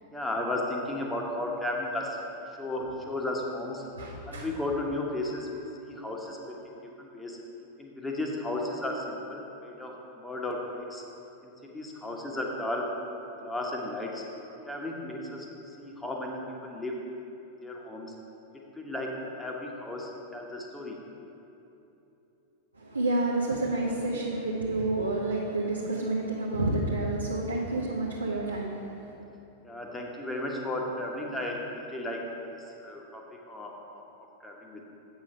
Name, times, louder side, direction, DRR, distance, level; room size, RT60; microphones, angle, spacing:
voice 1, 0.1-2.2 2.5-3.8 4.3-7.4 7.8-11.0 11.4-12.9 13.2-14.2 14.7-17.2 17.6-18.1 18.7-21.0 29.6-34.8, left 1 dB, 10° left, -1 dB, 1.2 m, -35 dB
voice 2, 4.0-4.5 22.7-29.1, right 2 dB, 80° right, -4 dB, 0.8 m, -29 dB
8.2 x 6.0 x 5.4 m, 3.0 s
figure-of-eight pair, 90°, 0 cm